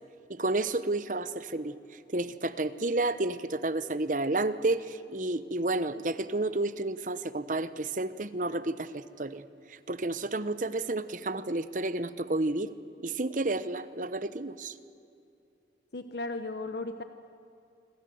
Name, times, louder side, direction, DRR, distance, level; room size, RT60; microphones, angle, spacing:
voice 1, 0.3-1.7 2.1-9.4 9.9-12.7 13.0-14.7, right 2 dB, 45° right, 14 dB, 1.0 m, -31 dB
voice 2, 15.9-17.0, left 2 dB, 65° left, 8 dB, 1.1 m, -35 dB
26.5 x 25.5 x 7.9 m, 2.6 s
head